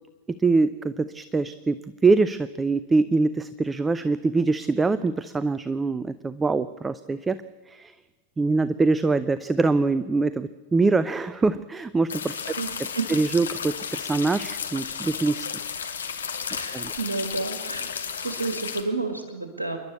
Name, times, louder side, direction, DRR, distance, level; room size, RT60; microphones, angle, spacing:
voice 1, 0.4-7.4 7.7-7.9 8.4-12.4 13.1-15.5 16.7-16.9, right 3 dB, 15° right, 15 dB, 0.5 m, -24 dB
sound 1, 12.1-18.8, left 7 dB, 70° left, 1.5 m, -33 dB
voice 2, 12.6-13.1 16.5-17.9 18.2-19.8, right 3 dB, 75° right, 5 dB, 2.1 m, -30 dB
28.0 x 11.5 x 8.3 m, 1.3 s
figure-of-eight pair, 90°, 0 cm